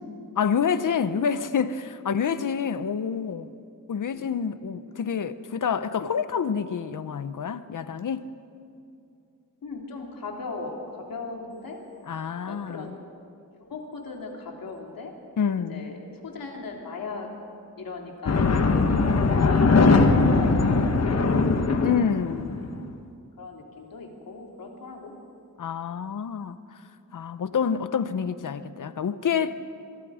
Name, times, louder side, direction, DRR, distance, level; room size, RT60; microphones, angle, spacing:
voice 1, 0.4-3.5 3.9-8.3 12.1-12.9 15.4-15.9 21.8-22.6 25.6-26.6 27.1-29.6, left 7 dB, 70° left, 0.9 m, -27 dB
voice 2, 9.6-11.8 12.4-13.0 13.6-15.1 15.7-17.3 17.8-21.5 22.8-22.9 23.4-25.1, left 3 dB, 90° left, 3.3 m, -38 dB
sound 1, 18.3-22.8, left 3 dB, 50° left, 1.3 m, -20 dB
24.0 x 23.5 x 5.0 m
wide cardioid pair, 160°, 33 cm